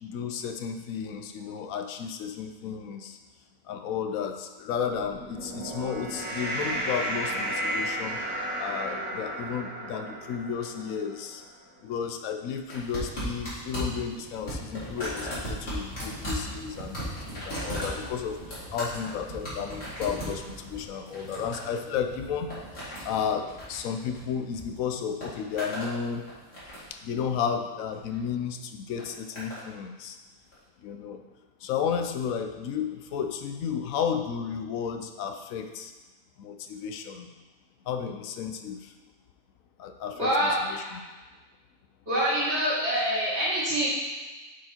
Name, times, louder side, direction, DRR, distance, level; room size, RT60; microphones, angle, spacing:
voice 1, 0.0-3.2 3.7-8.2 8.6-11.4 11.8-22.5 23.0-26.2 26.9-30.2 30.8-31.2 31.6-35.9 36.4-37.3 37.9-38.9 39.8-41.0, left 7 dB, 85° left, 6 dB, 1.1 m, -33 dB
sound 1, 4.9-11.4, right 1 dB, 5° right, 1.7 m, -33 dB
sound 2, 12.7-24.6 24.9-25.9 26.3-27.0 27.9-28.2 29.0-29.6 30.5-30.6, equal, 50° left, 2.7 m, -37 dB
voice 2, 40.2-40.9 42.1-43.9, equal, 55° right, -9 dB, 2.7 m, -26 dB
7.3 x 4.6 x 4.3 m, 1.2 s
omnidirectional pair, 1.4 m